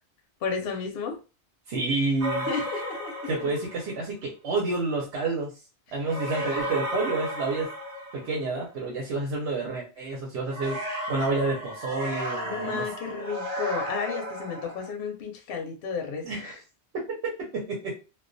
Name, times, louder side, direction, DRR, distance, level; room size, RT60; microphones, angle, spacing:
voice 1, 0.4-1.2 2.5-3.4 12.4-16.3, left 5 dB, 65° left, 4 dB, 0.7 m, -32 dB
voice 2, 1.7-2.5 3.3-5.5 5.9-7.7 8.1-12.9 16.2-16.6 17.5-17.9, right 3 dB, 80° right, -2 dB, 0.9 m, -29 dB
sound 1, 2.2-4.0 6.1-8.6 10.5-14.9, equal, 45° right, 0.7 m, -34 dB
2.2 x 2.1 x 2.5 m, 0.32 s
omnidirectional pair, 1.1 m